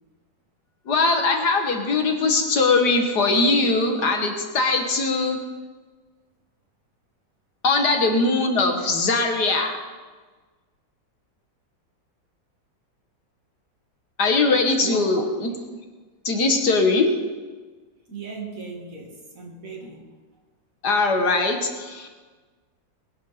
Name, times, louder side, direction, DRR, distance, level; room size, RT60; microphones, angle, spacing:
voice 1, 0.9-5.4 7.6-9.7 14.2-15.5 16.3-17.1 20.8-22.1, left 3 dB, 60° left, 4 dB, 1.9 m, -21 dB
voice 2, 14.8-15.2 18.1-20.1, right 4 dB, 45° right, 1 dB, 2.3 m, -36 dB
21.0 x 11.0 x 4.2 m, 1.4 s
omnidirectional pair, 2.0 m